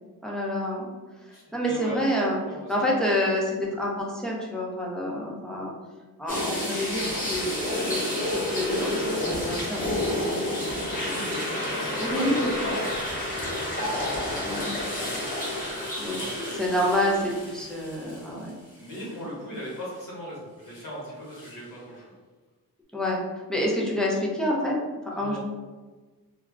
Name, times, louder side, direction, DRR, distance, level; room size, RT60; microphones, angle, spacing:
voice 1, 0.2-0.9 1.2-2.4 2.7-5.7 6.2-10.7 11.0-11.2 12.0-12.5 14.4-14.7 16.0-16.2 16.5-18.6 19.0-19.2 22.9-24.8 25.0-25.4, left 1 dB, ahead, -4 dB, 0.5 m, -28 dB
voice 2, 1.3-2.0 2.4-2.5 12.1-14.7 15.0-16.6 18.7-22.0 25.1-25.4, left 1 dB, 60° left, -6 dB, 1.0 m, -38 dB
sound 1, 6.3-18.5 18.9-19.0 21.4-21.5, left 1 dB, 20° left, 1.0 m, -30 dB
2.3 x 2.1 x 3.5 m, 1.3 s
wide cardioid pair, 115°, 38 cm